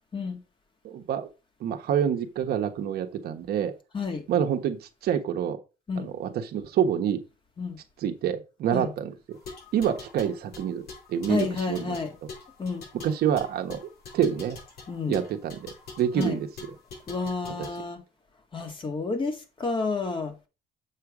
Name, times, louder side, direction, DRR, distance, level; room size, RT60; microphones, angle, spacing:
voice 1, 0.8-1.3 1.6-3.7 4.3-5.6 6.0-7.2 8.0-9.4 9.7-12.0 13.0-13.8 14.1-14.6 15.1-16.5 17.6-17.7, right 9 dB, 65° right, 1.3 m, -27 dB
sound 1, 9.3-17.8, left 4 dB, 70° left, 4.9 m, -45 dB
voice 2, 11.3-12.1 12.6-12.8 14.9-15.2 16.1-16.4 17.1-18.0 18.5-20.3, left 4 dB, 30° left, 2.0 m, -30 dB
7.6 x 5.7 x 4.9 m
cardioid pair, 110°, 17 cm